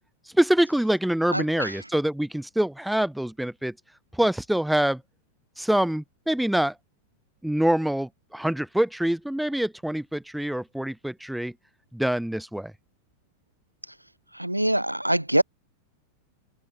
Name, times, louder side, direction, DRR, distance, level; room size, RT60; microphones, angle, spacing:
voice 1, 0.4-3.7 4.2-5.0 5.6-6.7 7.4-11.5 11.9-12.7, right 1 dB, ahead, 2.2 m, -25 dB
voice 2, 1.3-1.9 14.3-15.4, right 1 dB, 85° right, 4.8 m, -24 dB
figure-of-eight pair, 90°, 0 cm